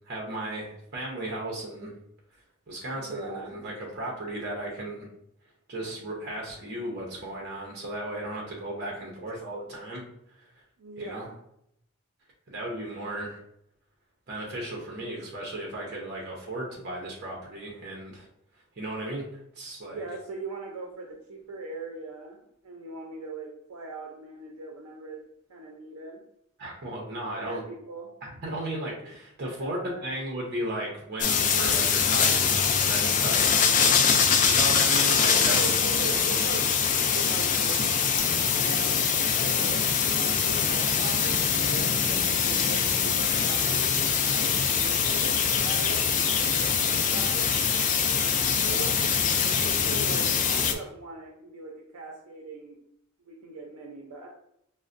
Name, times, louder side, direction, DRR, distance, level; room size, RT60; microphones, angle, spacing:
voice 1, 0.1-1.9 2.7-5.1 5.7-10.0 10.4-10.5 11.0-11.3 12.5-13.4 14.3-18.3 18.8-19.3 19.6-20.0 26.6-27.6 28.2-33.5 34.4-35.6, right 1 dB, 50° right, -2 dB, 0.7 m, -35 dB
voice 2, 2.9-3.6 10.8-11.4 19.8-25.2 25.5-26.2 27.1-28.1 29.4-30.1 33.2-34.5 35.2-42.0 42.4-46.1 46.5-47.6 48.6-49.0 49.4-52.8 53.2-54.3, right 3 dB, 90° right, 0 dB, 0.6 m, -40 dB
sound 1, 31.2-50.7, left 6 dB, 35° left, 0.3 m, -23 dB
5.3 x 2.1 x 2.5 m, 0.75 s
head